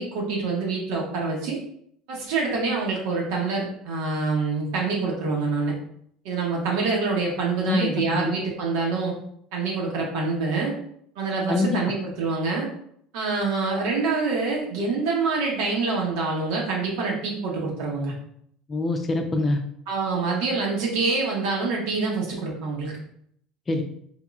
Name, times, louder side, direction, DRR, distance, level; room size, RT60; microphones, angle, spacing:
voice 1, 0.0-1.6 2.1-5.7 6.2-9.1 9.5-10.7 11.2-12.7 13.1-18.1 19.9-22.9, right 4 dB, 75° right, -2 dB, 1.1 m, -26 dB
voice 2, 18.7-19.6 23.7-23.8, left 2 dB, 25° left, 5 dB, 0.5 m, -24 dB
3.6 x 3.0 x 2.4 m, 0.68 s
supercardioid pair, 115°, 0 cm